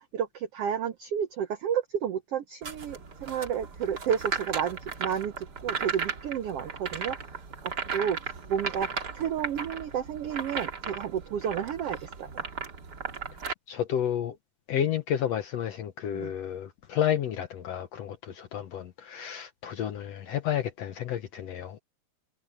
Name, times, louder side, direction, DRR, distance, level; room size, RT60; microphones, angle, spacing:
voice 1, 0.0-7.4 7.9-8.2 8.5-8.9 9.1-12.4 16.1-16.3, right 8 dB, 80° right, 1.3 m, -31 dB
sound 1, 2.6-13.5, right 5 dB, 35° right, 2.1 m, -36 dB
voice 2, 13.7-14.4 14.7-21.8, left 10 dB, 70° left, 1.6 m, -31 dB
omnidirectional pair, 3.9 m